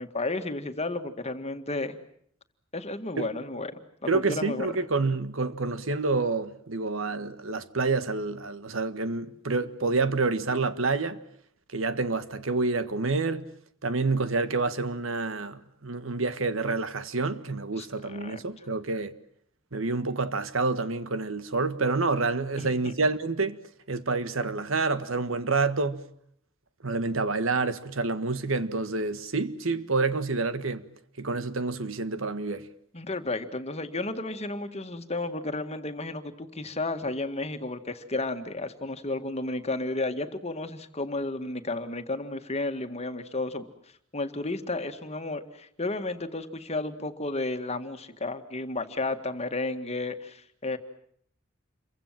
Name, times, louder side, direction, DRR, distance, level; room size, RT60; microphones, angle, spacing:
voice 1, 0.0-2.0 2.7-3.7 4.1-4.7 17.8-18.4 22.6-22.7 32.9-43.6 44.1-50.8, left 2 dB, 30° left, 1.9 m, -32 dB
voice 2, 4.1-11.2 11.7-13.4 13.8-19.1 19.7-23.6 23.9-26.0 26.8-30.9 31.2-32.7, right 3 dB, 70° right, 1.6 m, -28 dB
28.5 x 24.0 x 7.6 m
head